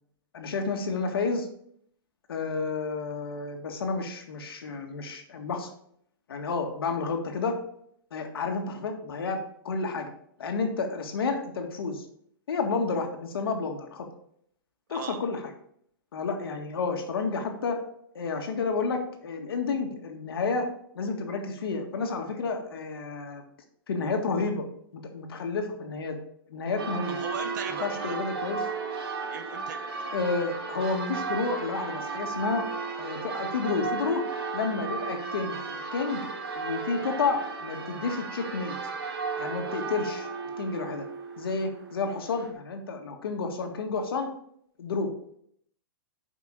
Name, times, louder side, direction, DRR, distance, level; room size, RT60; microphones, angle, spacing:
voice 1, 0.3-1.5 2.3-5.7 6.3-7.6 8.1-9.4 9.6-10.1 10.4-12.0 12.5-14.1 14.9-15.5 16.1-17.8 18.1-20.7 20.9-23.4 23.9-24.6 24.9-26.2 26.5-27.2 27.8-28.7 30.1-32.6 33.0-34.3 34.5-36.3 36.5-38.7 39.4-40.3 40.6-41.1 41.4-44.3 44.8-45.4, left 4 dB, 75° left, 4 dB, 1.9 m, -30 dB
voice 2, 14.9-15.2 27.2-28.2 29.3-30.1, right 7 dB, 50° right, 8 dB, 1.1 m, -38 dB
Church bell, 26.8-42.5, right 4 dB, 85° right, 2.3 m, -35 dB
8.3 x 5.5 x 4.9 m, 0.67 s
hypercardioid pair, 170°, 12 cm